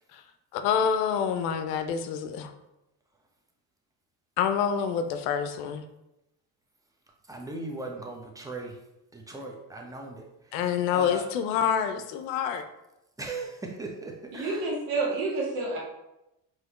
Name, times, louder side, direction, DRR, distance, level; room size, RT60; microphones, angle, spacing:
voice 1, 0.5-2.5 4.4-5.8 10.5-12.6, left 8 dB, 90° left, 8 dB, 0.6 m, -27 dB
voice 2, 7.3-8.8 9.1-11.3 13.2-14.7, right 2 dB, 5° right, 1 dB, 0.8 m, -38 dB
voice 3, 14.3-15.8, right 3 dB, 80° right, -3 dB, 1.5 m, -29 dB
4.8 x 3.0 x 3.0 m, 0.91 s
hypercardioid pair, 60°, 48 cm